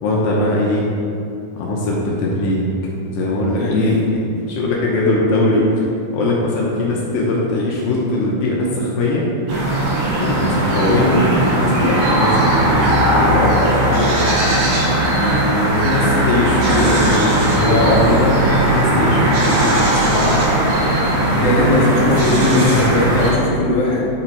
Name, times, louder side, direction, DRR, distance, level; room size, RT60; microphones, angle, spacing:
voice 1, 0.0-0.8 1.6-2.6 2.9-4.0 4.5-5.6 6.1-9.2 10.2-11.2 11.5-14.2 15.1-20.4 21.3-22.0 22.5-22.9, left 2 dB, 75° left, -4 dB, 2.5 m, -20 dB
voice 2, 3.6-4.1 21.4-22.6 22.9-24.0, left 2 dB, 60° left, -5 dB, 2.0 m, -19 dB
sound 1, 9.5-23.3, right 1 dB, 85° right, 3.5 m, -17 dB
8.9 x 4.3 x 4.5 m, 2.5 s
omnidirectional pair, 4.3 m